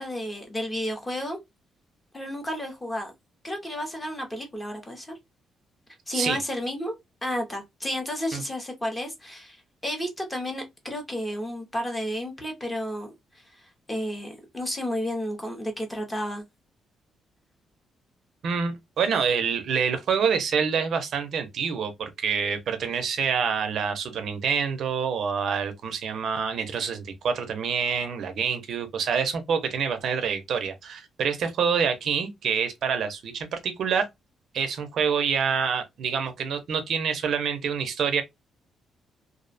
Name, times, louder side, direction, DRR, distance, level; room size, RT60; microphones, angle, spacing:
voice 1, 0.0-1.4 2.1-3.1 3.4-5.2 6.1-6.9 7.2-16.4, equal, 10° left, 0.6 m, -32 dB
voice 2, 18.4-34.1 34.5-38.2, right 6 dB, 55° right, 0.4 m, -27 dB
2.4 x 2.0 x 2.4 m
cardioid pair, 170°, 0 cm